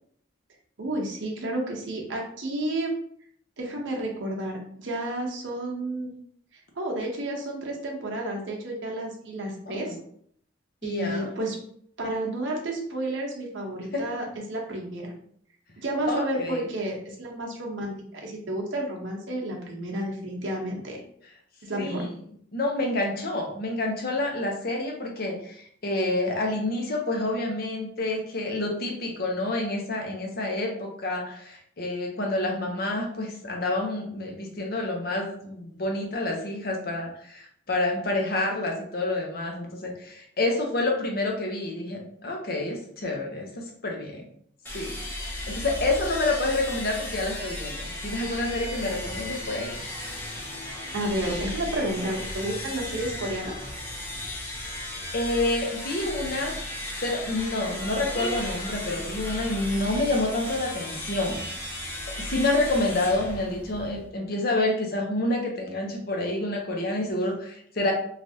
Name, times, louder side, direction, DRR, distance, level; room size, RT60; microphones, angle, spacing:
voice 1, 0.8-2.9 3.6-6.1 6.8-9.9 10.8-11.6 12.0-15.1 15.8-21.0 21.6-22.1 50.9-53.6, right 1 dB, 80° right, 0 dB, 0.8 m, -31 dB
voice 2, 10.8-11.3 13.9-14.0 16.1-16.6 21.8-22.1 22.5-44.2 44.7-44.9 45.2-49.7 55.1-56.6 57.0-61.4 62.2-67.9, left 2 dB, 55° left, 1 dB, 0.7 m, -28 dB
sound 1, 44.7-64.1, left 1 dB, 10° left, 0.5 m, -35 dB
3.3 x 2.4 x 2.7 m, 0.65 s
head